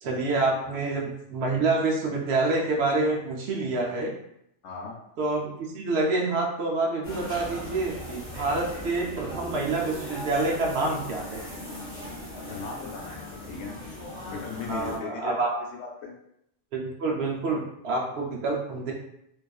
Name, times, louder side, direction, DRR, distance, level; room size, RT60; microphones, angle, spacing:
voice 1, 0.0-4.1 5.2-11.4 14.7-15.5 16.7-18.9, right 3 dB, 65° right, -1 dB, 0.8 m, -27 dB
voice 2, 4.6-5.0 12.5-13.8 14.3-16.1, left 5 dB, 80° left, 0 dB, 0.9 m, -38 dB
sound 1, 7.0-15.0, left 1 dB, 15° left, 0.9 m, -39 dB
sound 2, 8.2-12.0, equal, 15° right, 0.6 m, -45 dB
2.5 x 2.3 x 2.3 m, 0.77 s
omnidirectional pair, 1.2 m